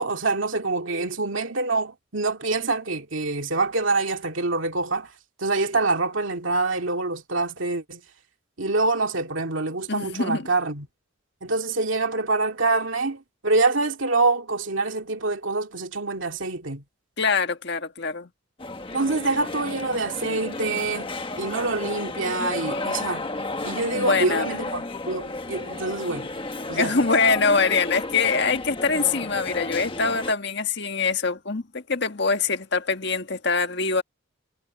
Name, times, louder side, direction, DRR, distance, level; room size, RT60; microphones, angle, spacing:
voice 1, 0.0-5.1 5.4-8.0 8.6-10.9 11.4-16.8 18.9-21.1 21.4-23.3 23.6-26.3 26.7-27.1, right 3 dB, 70° right, 2.3 m, -26 dB
voice 2, 9.9-10.5 17.2-18.3 23.9-24.5 26.7-34.0, left 4 dB, 55° left, 1.7 m, -24 dB
sound 1, 18.6-30.3, left 2 dB, 25° left, 1.3 m, -33 dB
head